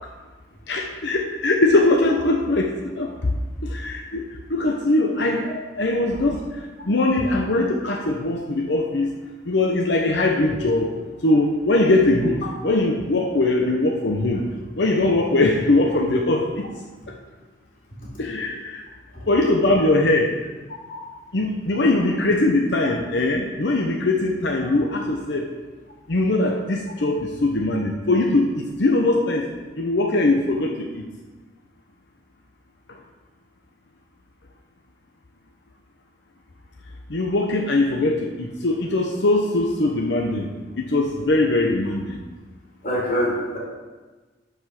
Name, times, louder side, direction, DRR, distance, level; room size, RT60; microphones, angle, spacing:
voice 1, 0.7-3.3 3.6-4.2 4.5-5.5 5.8-9.1 9.4-10.9 11.2-14.4 14.8-16.7 18.2-18.8 19.3-20.3 21.3-25.5 26.1-29.5 29.8-31.1 37.1-40.5 40.8-42.2, left 2 dB, 65° left, 2 dB, 0.9 m, -21 dB
voice 2, 42.8-43.6, equal, 50° left, -6 dB, 3.0 m, -25 dB
11.5 x 5.2 x 5.9 m, 1.3 s
head